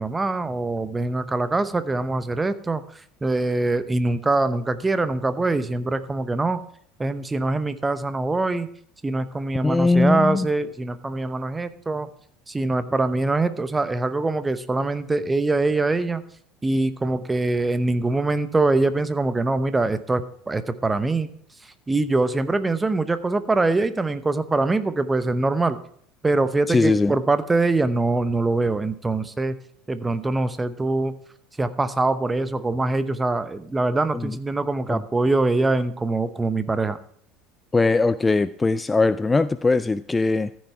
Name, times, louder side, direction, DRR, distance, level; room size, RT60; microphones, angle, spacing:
voice 1, 0.0-6.6 7.0-8.7 9.0-12.1 12.5-16.2 16.6-21.3 21.6-25.8 26.2-29.6 29.9-31.2 31.6-37.0, right 2 dB, 15° right, 12 dB, 0.8 m, -23 dB
voice 2, 9.6-10.5 26.7-27.1 34.1-34.3 34.9-35.0 37.7-40.5, left 3 dB, 15° left, 16 dB, 0.3 m, -20 dB
14.0 x 6.3 x 4.6 m, 0.63 s
figure-of-eight pair, 65°, 0 cm